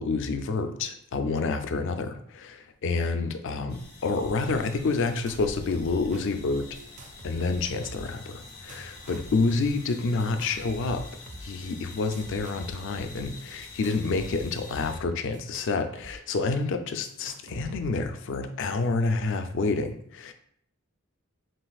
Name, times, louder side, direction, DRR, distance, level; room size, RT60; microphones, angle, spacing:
voice 1, 0.0-6.7 7.2-11.1 11.4-20.3, left 3 dB, 60° left, 8 dB, 0.4 m, -28 dB
sound 1, 3.7-15.0, left 2 dB, 85° left, 1.5 m, -46 dB
sound 2, 4.8-5.4 5.7-6.2 6.8-8.2 8.5-9.4 10.2-11.4 11.9-13.0 13.6-16.1 16.4-16.5 17.0-18.1, right 1 dB, 35° right, 0.5 m, -45 dB
7.4 x 2.5 x 2.4 m, 0.68 s
head